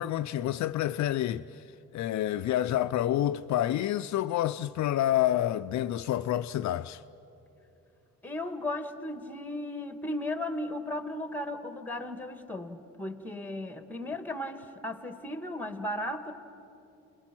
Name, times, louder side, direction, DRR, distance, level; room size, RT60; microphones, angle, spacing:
voice 1, 0.0-1.7 1.9-7.0, left 12 dB, 70° left, 0.5 m, -28 dB
voice 2, 8.2-16.3, left 1 dB, 5° left, 1.7 m, -36 dB
29.0 x 21.5 x 6.1 m
cardioid pair, 90°, 30 cm